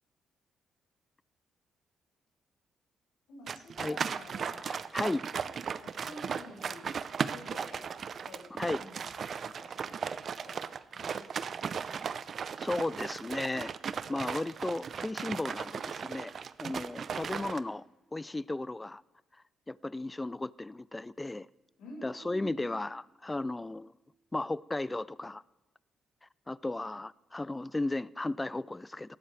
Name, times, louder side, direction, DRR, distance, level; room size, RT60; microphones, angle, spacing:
voice 1, 3.3-4.7 5.8-7.0 7.3-8.5 8.8-10.6 10.9-11.6 21.8-22.7, left 1 dB, 90° left, 5.7 m, -50 dB
sound 1, 3.5-17.6, right 6 dB, 50° right, 0.6 m, -37 dB
voice 2, 4.7-5.2 8.6-8.8 12.6-13.7 14.1-16.3 16.6-17.8 18.1-19.0 19.7-21.5 22.0-23.9 24.3-25.4 26.5-29.2, left 2 dB, 15° left, 0.3 m, -35 dB
19.0 x 15.0 x 3.4 m
cardioid pair, 105°, 0 cm